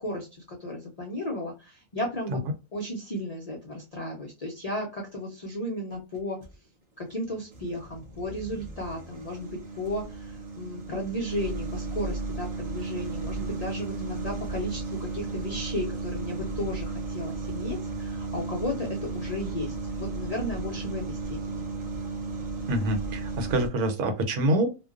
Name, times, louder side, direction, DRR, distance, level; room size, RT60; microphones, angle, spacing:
voice 1, 0.0-2.4 2.7-6.4 7.0-21.6, left 1 dB, 75° left, 0 dB, 0.3 m, -34 dB
sound 1, 5.9-6.5 7.1-23.7, right 3 dB, 55° right, 0.4 m, -35 dB
voice 2, 22.7-24.7, right 1 dB, 75° right, 6 dB, 1.2 m, -26 dB
2.5 x 2.2 x 2.3 m, 0.28 s
omnidirectional pair, 1.6 m